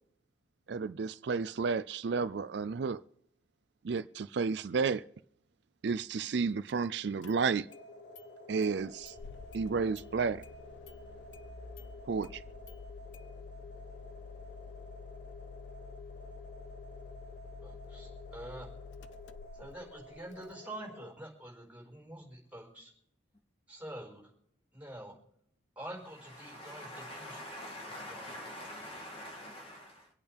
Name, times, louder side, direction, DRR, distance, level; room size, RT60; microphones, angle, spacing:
voice 1, 0.7-3.0 3.8-5.0 5.8-7.7 8.5-9.1 9.5-10.4 12.1-12.4, right 5 dB, 65° right, 0.4 m, -32 dB
Engine starting, 6.7-6.8 7.2-7.8 8.2-8.3 8.6-20.5, left 5 dB, 75° left, 0.6 m, -50 dB
sound 1, 7.7-21.1, left 1 dB, 45° left, 1.3 m, -51 dB
voice 2, 17.6-18.7 19.5-22.9 23.7-24.3 24.7-25.1 25.7-27.4 27.9-28.4, right 1 dB, 10° right, 4.7 m, -46 dB
voice 3, 26.4-30.1, left 1 dB, 30° left, 2.3 m, -45 dB
26.0 x 8.7 x 3.4 m
head